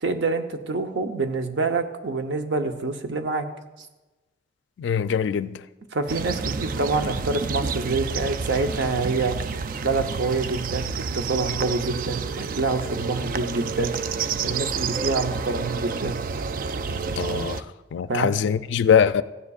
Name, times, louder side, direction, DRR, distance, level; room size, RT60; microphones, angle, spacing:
voice 1, 0.0-3.5 5.9-9.4 9.8-14.0 14.4-16.2 18.1-18.3, right 3 dB, 80° right, 0.8 m, -26 dB
voice 2, 4.8-5.6 17.2-17.6 17.9-19.2, left 7 dB, 85° left, 0.3 m, -22 dB
sound 1, 6.1-17.6, right 5 dB, 50° right, 0.3 m, -29 dB
15.0 x 9.6 x 2.4 m
head